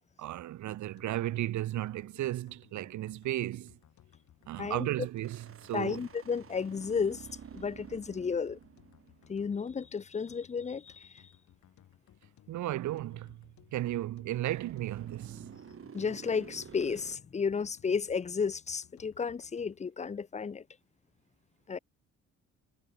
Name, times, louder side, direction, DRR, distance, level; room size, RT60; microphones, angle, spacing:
voice 1, 0.2-3.7 4.5-5.4 5.7-6.1 12.5-13.3 13.7-15.5, right 14 dB, 70° right, 0.9 m, -34 dB
sound 1, 0.7-19.9, left 11 dB, 70° left, 5.0 m, -62 dB
sound 2, 5.2-9.8 14.5-17.2, right 7 dB, 45° right, 2.7 m, -50 dB
voice 2, 5.7-7.3 7.5-8.6 9.3-11.2 15.9-20.6 21.7-21.8, left 5 dB, 25° left, 0.6 m, -33 dB
cardioid pair, 90°, 30 cm